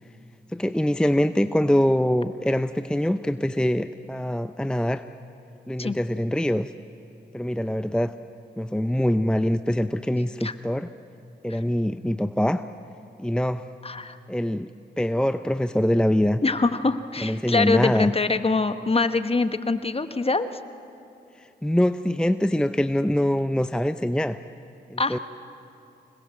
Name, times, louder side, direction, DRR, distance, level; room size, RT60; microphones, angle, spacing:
voice 1, 0.5-5.0 5.7-6.7 7.3-8.1 8.6-10.9 11.4-12.7 13.2-13.7 14.3-14.7 15.0-16.4 17.2-18.1 21.4-24.4 24.9-25.2, equal, 5° left, 11 dB, 0.6 m, -24 dB
voice 2, 13.8-14.2 16.4-20.5 25.0-25.2, left 3 dB, 30° left, 10 dB, 1.3 m, -24 dB
25.5 x 20.5 x 7.7 m, 2.7 s
supercardioid pair, 45°, 19 cm